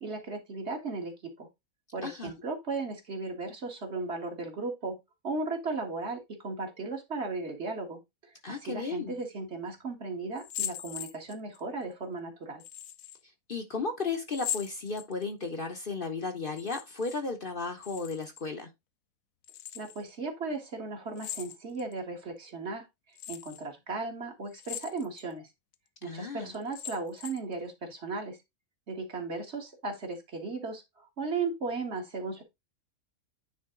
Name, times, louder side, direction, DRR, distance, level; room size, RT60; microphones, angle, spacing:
voice 1, 0.0-1.5 1.9-5.0 5.2-8.0 8.5-12.6 19.8-22.9 23.3-25.5 26.0-28.4 28.9-32.4, right 3 dB, 50° right, 2.0 m, -36 dB
voice 2, 2.0-2.3 8.4-9.2 13.5-18.7 26.0-26.5, left 4 dB, 45° left, 1.0 m, -34 dB
sound 1, 10.4-11.6 12.6-13.2 14.3-15.4 16.5-17.2 17.5-18.5 19.4-20.0 21.2-21.9 22.5-22.6 23.2-23.6 24.5-25.3 25.7-25.8 26.5-27.5, left 10 dB, 80° left, 1.1 m, -40 dB
9.6 x 3.6 x 3.8 m
omnidirectional pair, 1.4 m